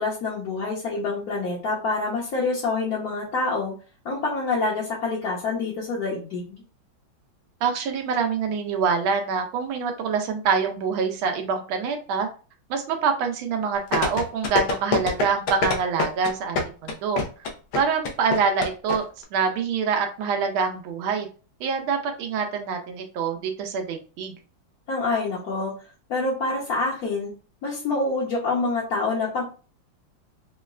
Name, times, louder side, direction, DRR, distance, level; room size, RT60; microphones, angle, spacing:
voice 1, 0.0-3.7 4.0-6.6 24.9-25.8 26.1-27.3 27.6-29.4, left 3 dB, 55° left, -5 dB, 1.2 m, -26 dB
voice 2, 7.6-12.3 12.7-16.6 16.8-17.2 17.7-19.0 19.3-21.3 21.6-24.3, right 5 dB, 90° right, 4 dB, 1.4 m, -25 dB
sound 1, 13.9-19.0 19.2-19.3, left 3 dB, 85° left, 1.6 m, -24 dB
6.0 x 2.1 x 2.3 m, 0.36 s
omnidirectional pair, 2.2 m